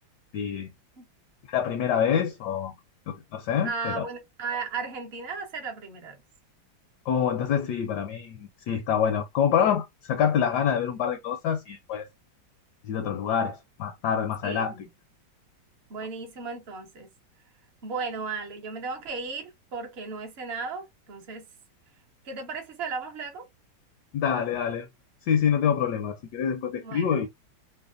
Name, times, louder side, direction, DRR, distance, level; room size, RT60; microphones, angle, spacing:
voice 1, 0.3-0.7 1.5-2.7 3.1-4.1 7.1-12.1 12.8-14.7 24.1-24.9 25.3-27.3, left 8 dB, 75° left, 1.0 m, -26 dB
voice 2, 3.6-6.2 14.4-14.9 15.9-17.1 17.8-21.5 22.2-23.5 26.8-27.2, right 4 dB, 55° right, 0.7 m, -35 dB
3.2 x 2.1 x 2.4 m
omnidirectional pair, 2.1 m